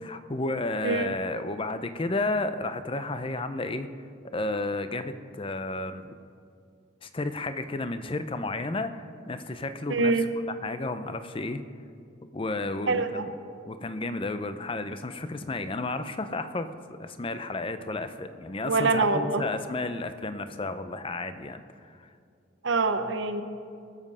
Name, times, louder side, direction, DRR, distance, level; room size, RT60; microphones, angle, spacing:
voice 1, 0.0-3.9 4.3-6.1 7.0-10.1 10.6-11.6 12.3-13.3 13.7-16.7 17.0-21.6 22.0-22.1, left 2 dB, 25° left, 10 dB, 0.5 m, -32 dB
voice 2, 0.8-1.2 9.9-10.3 12.9-13.2 18.6-19.4 22.6-23.4, right 3 dB, 65° right, 9 dB, 0.9 m, -25 dB
19.5 x 7.5 x 5.5 m, 2.4 s
head